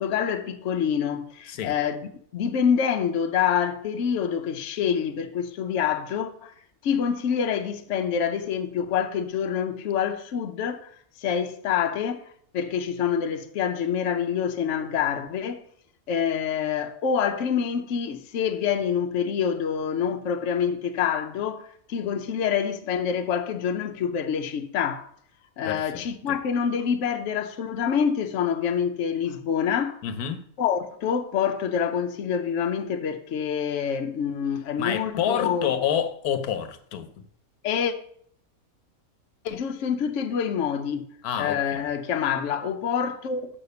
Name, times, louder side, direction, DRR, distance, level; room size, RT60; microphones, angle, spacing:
voice 1, 0.0-6.5 6.8-10.9 11.2-12.3 12.5-15.6 16.1-25.1 25.6-30.0 30.6-35.7 37.6-37.9 39.4-43.5, left 7 dB, 60° left, 1.0 m, -26 dB
voice 2, 25.6-26.0 30.0-30.4 34.8-37.1 41.2-41.8, left 8 dB, 90° left, 1.3 m, -28 dB
6.7 x 5.7 x 6.8 m
omnidirectional pair, 1.5 m